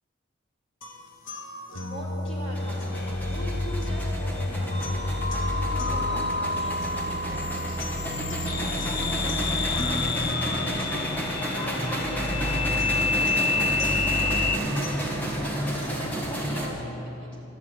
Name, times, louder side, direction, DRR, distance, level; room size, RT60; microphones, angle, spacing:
sound 1, 0.8-16.8, equal, 85° left, 1.4 m, -35 dB
voice 1, 1.8-4.9 5.2-11.1 11.5-14.8 15.6-17.4, equal, 30° left, -7 dB, 3.7 m, -41 dB
sound 2, 2.5-16.7, right 1 dB, 10° left, 1.8 m, -32 dB
sound 3, 2.9-14.6, left 3 dB, 50° left, 0.6 m, -29 dB
13.5 x 11.0 x 8.0 m, 2.8 s
head